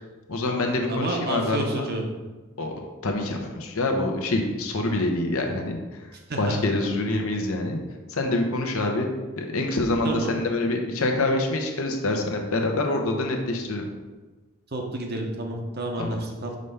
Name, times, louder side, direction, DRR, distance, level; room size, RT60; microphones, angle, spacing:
voice 1, 0.3-1.9 2.6-2.7 3.0-6.1 6.4-7.8 8.1-9.1 9.4-13.9 16.0-16.2, left 2 dB, 75° left, 3 dB, 0.8 m, -26 dB
voice 2, 0.9-2.0 6.3-7.0 10.0-10.3 14.7-16.6, right 2 dB, 45° right, 2 dB, 0.8 m, -30 dB
5.2 x 3.3 x 5.5 m, 1.2 s
head